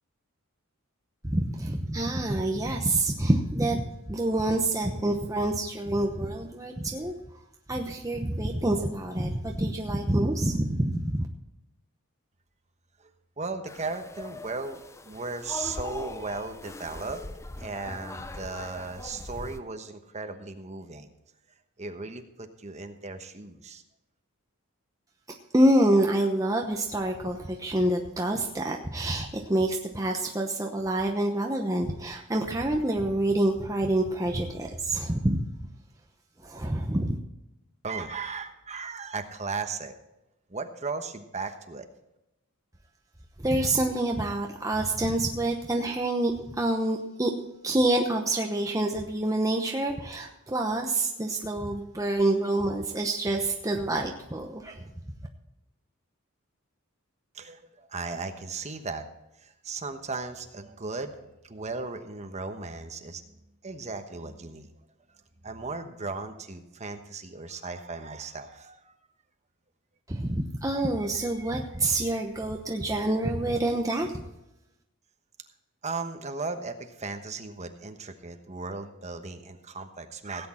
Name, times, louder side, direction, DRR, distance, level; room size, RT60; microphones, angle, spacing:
voice 1, 1.2-7.1 7.7-11.3 25.5-35.4 36.4-37.2 43.4-47.3 47.6-54.9 70.1-74.2, right 1 dB, 15° right, 2 dB, 0.9 m, -27 dB
voice 2, 13.4-17.2 17.6-21.1 21.8-23.8 37.8-39.9 40.5-41.9 57.3-59.0 59.4-63.2 63.6-64.7 65.4-68.9 75.8-80.5, right 4 dB, 30° right, 6 dB, 1.2 m, -36 dB
sound 1, 13.7-19.6, left 2 dB, 15° left, 0.5 m, -41 dB
17.0 x 8.6 x 4.3 m, 0.92 s
head